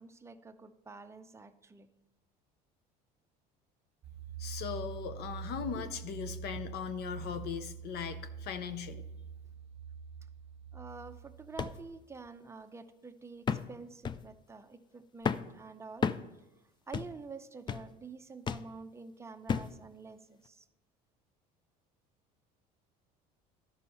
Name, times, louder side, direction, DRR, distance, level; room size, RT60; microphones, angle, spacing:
voice 1, 0.0-1.9 5.7-5.9 6.2-6.4 10.7-16.1 16.9-20.7, right 4 dB, 15° right, 8 dB, 0.6 m, -48 dB
sound 1, 4.0-11.8, right 7 dB, 35° right, 1.0 m, -45 dB
voice 2, 4.4-9.0, left 7 dB, 60° left, 10 dB, 0.6 m, -39 dB
sound 2, 11.6-11.8 12.3-12.4 13.5-13.7 14.0-14.3 15.2-15.5 16.0-16.3 16.9-17.2 17.7-17.9 18.5-18.7 19.5-19.8 20.5-20.6, left 6 dB, 25° left, 0.3 m, -33 dB
12.5 x 5.5 x 4.2 m, 0.99 s
supercardioid pair, 90°, 19 cm